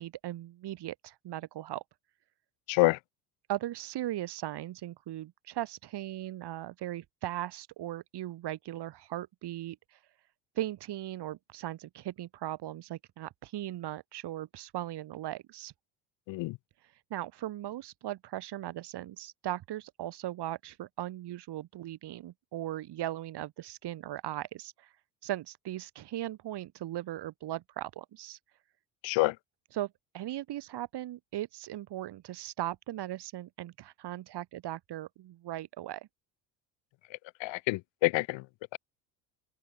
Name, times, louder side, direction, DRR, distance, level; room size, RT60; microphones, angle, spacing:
voice 1, 0.0-1.8 3.5-10.0 10.6-15.7 17.1-24.9 25.2-28.4 29.7-36.1, right 13 dB, 55° right, 3.5 m, -38 dB
voice 2, 2.7-3.0 16.3-16.6 29.0-29.3 37.4-38.4 38.7-38.8, left 21 dB, 65° left, 2.0 m, -27 dB
open air
hypercardioid pair, 75°, 49 cm